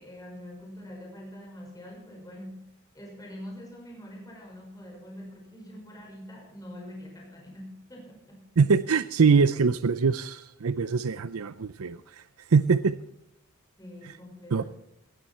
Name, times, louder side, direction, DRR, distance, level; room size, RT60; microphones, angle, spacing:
voice 1, 0.0-8.5 13.8-14.7, equal, 15° left, -1 dB, 5.5 m, -44 dB
voice 2, 8.6-12.9 14.0-14.1 14.5-14.7, right 5 dB, 80° right, 14 dB, 0.6 m, -23 dB
18.5 x 13.5 x 4.4 m, 0.79 s
head